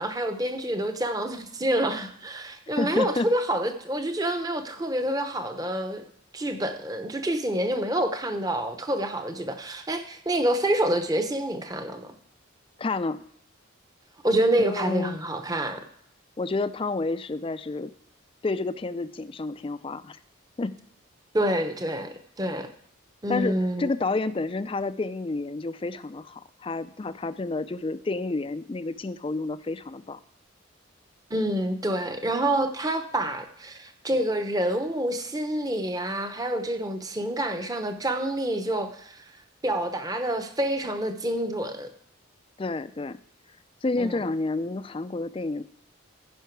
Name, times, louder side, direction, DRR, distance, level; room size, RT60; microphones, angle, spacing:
voice 1, 0.0-6.0 6.3-12.1 14.2-15.8 21.3-22.7 23.2-23.9 31.3-39.2 39.6-41.9 44.0-44.2, right 1 dB, 15° right, 7 dB, 0.8 m, -27 dB
voice 2, 2.8-3.3 12.8-13.2 14.6-15.2 16.4-17.9 18.4-20.2 20.6-20.8 23.3-30.2 42.6-43.2 43.8-45.6, left 3 dB, 25° left, 14 dB, 0.4 m, -30 dB
15.0 x 5.6 x 4.6 m, 0.70 s
head